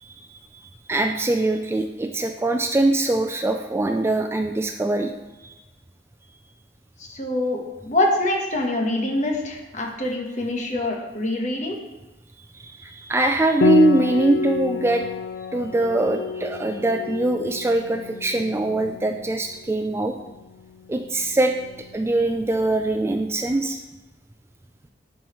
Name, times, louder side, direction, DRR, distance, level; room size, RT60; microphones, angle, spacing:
voice 1, 0.9-5.1 5.4-5.5 12.5-15.0 15.5-20.1 20.9-21.5 21.9-23.8, right 2 dB, 15° right, 5 dB, 0.3 m, -22 dB
voice 2, 7.0-11.7, left 1 dB, 45° left, 1 dB, 1.2 m, -25 dB
Piano, 13.6-22.9, left 5 dB, 85° left, 0.3 m, -30 dB
11.0 x 4.8 x 3.1 m, 1.1 s
head